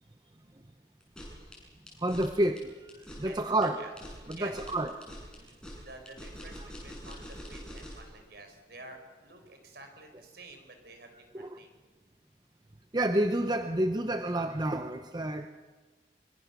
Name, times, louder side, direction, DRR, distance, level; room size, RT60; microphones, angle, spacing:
sound 1, 1.0-8.1, equal, 5° left, 7.4 m, -45 dB
voice 1, 2.0-2.7 3.2-3.8 4.3-4.9 6.6-6.7 11.3-11.5 12.9-15.5, right 1 dB, 20° right, 7 dB, 0.8 m, -29 dB
voice 2, 3.2-3.9 4.3-4.8 5.4-11.7, right 2 dB, 60° right, 5 dB, 4.8 m, -50 dB
25.5 x 24.5 x 6.9 m, 1.4 s
head